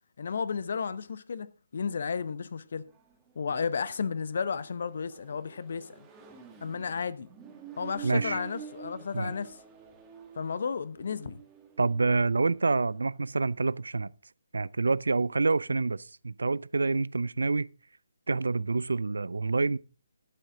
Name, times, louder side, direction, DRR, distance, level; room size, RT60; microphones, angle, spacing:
voice 1, 0.2-1.5 1.7-2.8 3.4-6.0 6.6-7.3 7.8-9.6 10.4-11.4, left 6 dB, 55° left, 0.9 m, -33 dB
Accelerating revving vroom, 2.8-13.2, right 8 dB, 15° right, 1.8 m, -49 dB
voice 2, 8.0-8.4 9.1-9.3 11.8-14.1 14.5-17.7 18.3-19.8, right 3 dB, 70° right, 0.4 m, -27 dB
11.5 x 9.1 x 3.7 m
figure-of-eight pair, 145°, 0 cm